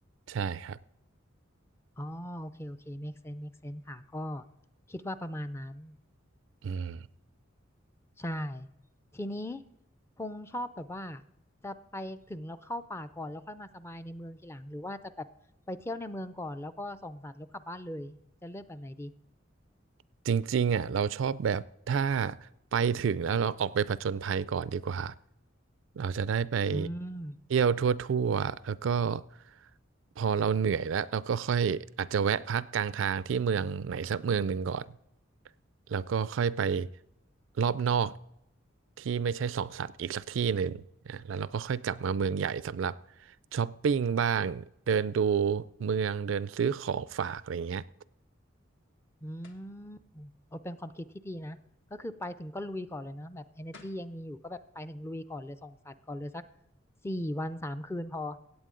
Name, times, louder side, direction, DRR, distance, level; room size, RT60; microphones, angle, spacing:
voice 1, 0.3-0.8 6.6-7.1 20.3-22.4 22.7-25.1 26.0-26.9 27.5-29.2 30.2-34.9 35.9-36.9 37.6-38.2 39.0-43.0 43.5-47.8, right 6 dB, 70° right, 0.4 m, -29 dB
voice 2, 2.0-4.4 4.9-6.0 8.2-8.7 9.1-9.6 10.2-11.2 11.6-15.3 15.7-19.1 26.6-27.4 49.2-51.6 51.9-56.4 57.0-58.4, left 1 dB, 15° left, 0.4 m, -39 dB
sound 1, 49.4-49.7 53.4-53.5 53.7-54.1, left 3 dB, 65° left, 1.5 m, -53 dB
16.5 x 8.7 x 3.8 m
head